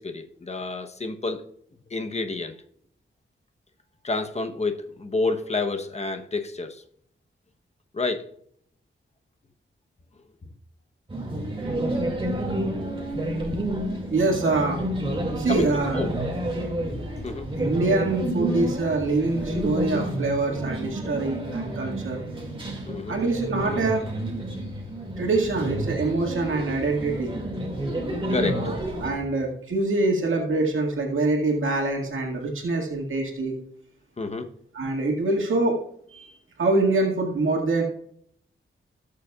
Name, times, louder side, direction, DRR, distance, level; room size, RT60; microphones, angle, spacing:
voice 1, 0.0-1.4 1.9-2.6 4.0-6.8 7.9-8.3 10.4-10.5 15.5-16.3 17.2-17.5 22.9-23.2 28.3-28.7 34.2-34.5, left 3 dB, 30° left, 7 dB, 0.9 m, -29 dB
sound 1, 11.1-29.1, right 1 dB, 25° right, 2.2 m, -30 dB
voice 2, 14.1-14.8 15.4-16.0 17.6-22.2 23.1-24.0 25.2-27.3 28.2-33.5 34.7-35.8 36.1-36.3 36.6-37.8, right 3 dB, 75° right, 0 dB, 1.9 m, -25 dB
18.0 x 6.7 x 2.3 m, 0.67 s
wide cardioid pair, 120°, 21 cm